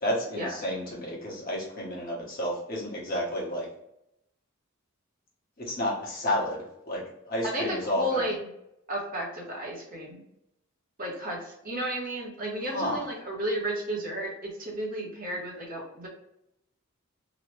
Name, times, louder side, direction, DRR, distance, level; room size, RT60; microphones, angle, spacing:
voice 1, 0.0-3.7 5.7-8.2 12.7-13.0, left 1 dB, 45° left, -4 dB, 1.1 m, -31 dB
voice 2, 7.4-8.5 8.9-10.2 11.0-16.1, right 1 dB, 45° right, -2 dB, 0.9 m, -33 dB
3.0 x 2.1 x 3.1 m, 0.80 s
head